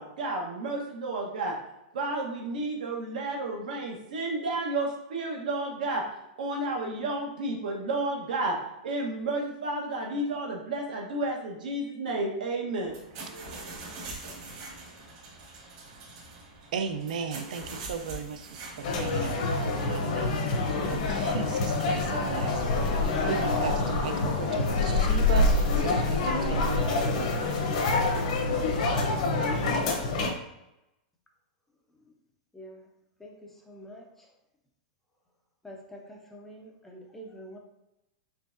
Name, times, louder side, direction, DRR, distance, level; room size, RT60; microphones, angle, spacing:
voice 1, 0.0-1.5 1.9-6.0 6.4-8.6 8.8-12.9, right 2 dB, 90° right, 0 dB, 1.1 m, -31 dB
sound 1, 12.8-21.5, right 2 dB, 45° right, 1.2 m, -44 dB
voice 2, 16.7-27.6, right 6 dB, 70° right, 8 dB, 0.4 m, -36 dB
sound 2, 18.8-30.3, left 3 dB, 60° left, 0.8 m, -26 dB
voice 3, 32.5-32.9 33.2-34.3 35.6-37.6, equal, 5° left, 0 dB, 0.4 m, -46 dB
4.4 x 3.4 x 2.6 m, 0.90 s
supercardioid pair, 165°, 4 cm